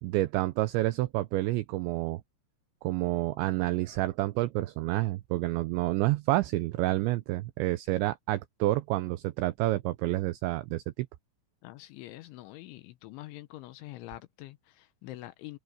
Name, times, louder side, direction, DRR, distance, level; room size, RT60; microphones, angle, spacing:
voice 1, 0.0-2.2 2.8-11.1, right 17 dB, 85° right, 2.6 m, -29 dB
voice 2, 11.6-15.6, left 17 dB, 75° left, 3.0 m, -45 dB
omnidirectional pair, 5.9 m